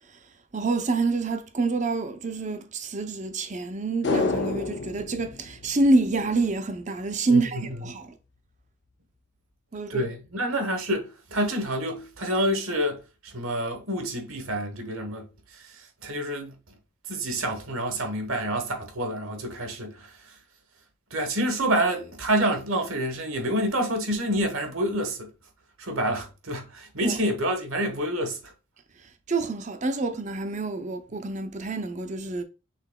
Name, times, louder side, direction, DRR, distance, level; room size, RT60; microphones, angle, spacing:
voice 1, 0.5-8.1 9.7-10.1 27.0-27.2 29.3-32.4, right 3 dB, 35° right, 0.6 m, -27 dB
sound 1, 4.0-6.5 6.8-6.9, left 3 dB, 55° left, 0.6 m, -29 dB
voice 2, 7.3-7.9 9.9-16.5 17.1-20.1 21.1-25.3 25.8-28.5, right 1 dB, 75° right, 1.2 m, -28 dB
5.8 x 3.8 x 2.2 m
head